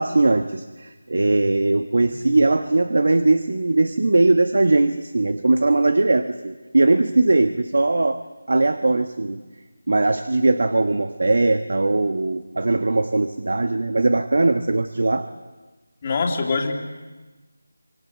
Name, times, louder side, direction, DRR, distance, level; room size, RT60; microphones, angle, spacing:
voice 1, 0.0-9.4 9.9-15.3, right 2 dB, 60° right, 9 dB, 1.3 m, -20 dB
voice 2, 16.0-16.7, left 4 dB, 25° left, 1 dB, 2.7 m, -24 dB
26.0 x 25.0 x 8.3 m, 1.2 s
figure-of-eight pair, 175°, 0 cm